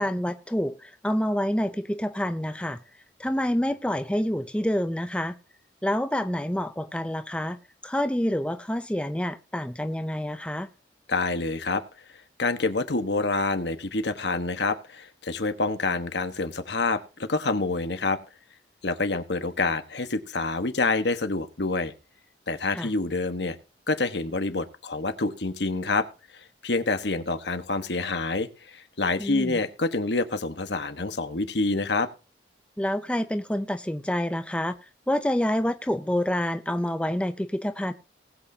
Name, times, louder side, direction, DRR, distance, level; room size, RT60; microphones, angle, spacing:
voice 1, 0.0-2.8 3.2-5.4 5.8-7.6 7.8-10.7 22.7-22.9 29.2-29.6 32.8-34.8 35.1-37.9, left 1 dB, 5° left, 0.5 m, -27 dB
voice 2, 11.1-11.8 12.4-18.2 18.8-21.9 22.5-23.6 23.9-26.1 26.6-32.1, left 3 dB, 75° left, 1.3 m, -27 dB
19.5 x 8.3 x 2.8 m
head